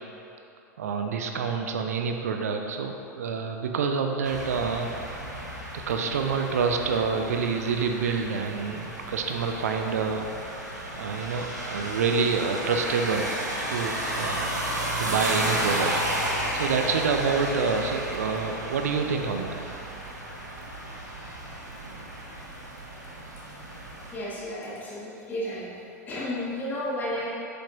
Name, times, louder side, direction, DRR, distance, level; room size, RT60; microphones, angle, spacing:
voice 1, 0.8-5.2 5.9-10.3 10.9-13.3 13.7-14.5 15.0-19.6 21.8-22.1, right 5 dB, 60° right, 4 dB, 0.5 m, -27 dB
sound 1, 4.2-24.2, right 1 dB, 80° right, 0.9 m, -33 dB
voice 2, 24.1-25.7 26.1-27.3, left 1 dB, 20° left, -7 dB, 1.3 m, -32 dB
7.1 x 5.3 x 2.9 m, 2.8 s
figure-of-eight pair, 90°, 9 cm